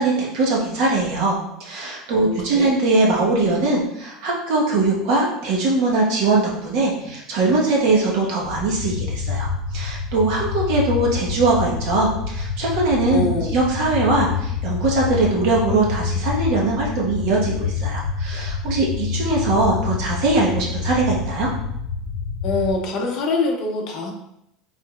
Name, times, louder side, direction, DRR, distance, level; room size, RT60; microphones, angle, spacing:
voice 1, 0.0-9.5 9.7-13.2 13.5-21.5, right 2 dB, 50° right, -3 dB, 1.3 m, -21 dB
voice 2, 2.1-2.7 13.1-13.6 22.4-24.1, left 3 dB, 35° left, 1 dB, 0.7 m, -24 dB
sound 1, 8.4-22.7, left 5 dB, 65° left, 0.9 m, -27 dB
5.0 x 3.9 x 2.4 m, 0.79 s
cardioid pair, 180°, 0 cm